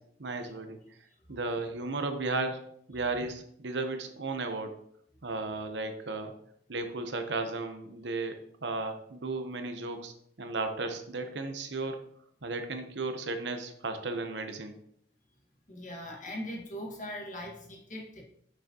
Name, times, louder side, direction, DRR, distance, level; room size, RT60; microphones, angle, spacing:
voice 1, 0.2-0.8 1.3-2.6 2.9-4.7 5.2-6.3 6.7-8.3 8.6-10.1 10.4-12.0 12.4-14.7, right 3 dB, 75° right, 6 dB, 0.9 m, -34 dB
voice 2, 15.7-18.2, left 1 dB, 45° left, -2 dB, 1.8 m, -41 dB
7.7 x 6.5 x 3.0 m, 0.69 s
head